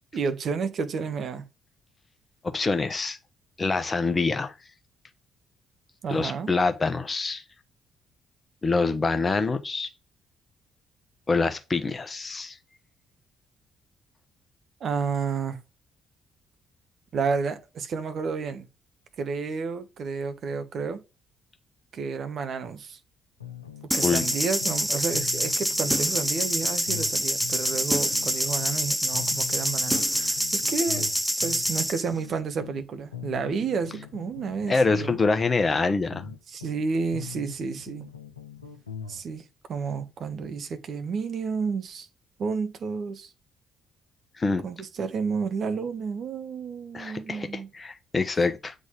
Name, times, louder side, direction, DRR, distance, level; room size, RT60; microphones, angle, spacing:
voice 1, 0.1-1.4 6.0-6.5 14.8-15.6 17.1-18.7 19.2-21.0 21.9-23.0 23.9-31.1 31.4-35.2 36.5-38.1 39.1-42.1 42.4-43.3 44.6-47.7, right 5 dB, 50° right, 1.0 m, -31 dB
voice 2, 2.4-3.2 3.6-4.5 6.1-7.4 8.6-9.9 11.3-12.6 24.0-24.2 34.7-36.3 44.4-44.6 46.9-48.7, left 3 dB, 30° left, 1.0 m, -25 dB
sound 1, 23.4-24.9 25.1-28.8 29.1-32.8 33.1-36.8 37.1-39.2, left 8 dB, 85° left, 0.6 m, -41 dB
sound 2, 23.9-32.0, equal, ahead, 0.6 m, -26 dB
8.0 x 3.9 x 3.7 m
figure-of-eight pair, 45°, 0 cm